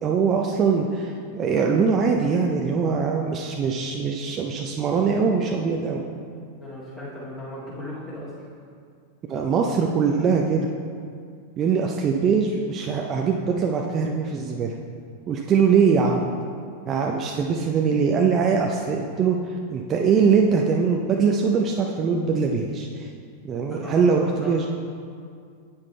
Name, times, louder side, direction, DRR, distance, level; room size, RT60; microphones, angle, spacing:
voice 1, 0.0-6.0 9.3-10.7 11.6-14.7 15.3-16.2 16.9-23.1 23.4-24.7, right 5 dB, 30° right, 0 dB, 0.5 m, -22 dB
voice 2, 6.6-8.3 23.7-24.7, left 1 dB, 15° left, -10 dB, 1.9 m, -37 dB
9.7 x 8.7 x 2.2 m, 2.2 s
figure-of-eight pair, 90°, 0 cm